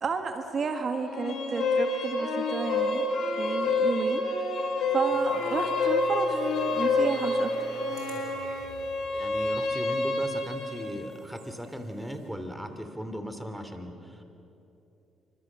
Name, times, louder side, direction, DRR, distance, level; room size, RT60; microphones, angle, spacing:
voice 1, 0.0-3.1 3.3-4.2 4.9-6.4 6.7-7.8, right 5 dB, 50° right, 6 dB, 1.8 m, -32 dB
sound 1, 1.0-10.9, left 2 dB, 65° left, 5.6 m, -28 dB
sound 2, 5.1-12.3, right 1 dB, 80° right, 6.8 m, -48 dB
voice 2, 9.1-14.2, equal, 5° right, 7 dB, 3.1 m, -38 dB
28.0 x 25.0 x 7.5 m, 2.9 s
cardioid pair, 90°, 0 cm